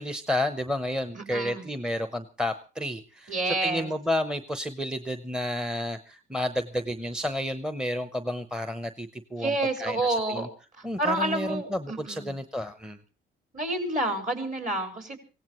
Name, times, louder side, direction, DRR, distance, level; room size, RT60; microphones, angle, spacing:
voice 1, 0.0-10.5 10.8-13.0, left 1 dB, 5° right, 9 dB, 0.8 m, -31 dB
voice 2, 1.1-1.6 3.3-3.9 9.4-10.5 11.0-12.4 13.5-15.2, right 2 dB, 40° right, 5 dB, 4.4 m, -29 dB
24.5 x 16.5 x 3.1 m, 0.32 s
cardioid pair, 90°, 20 cm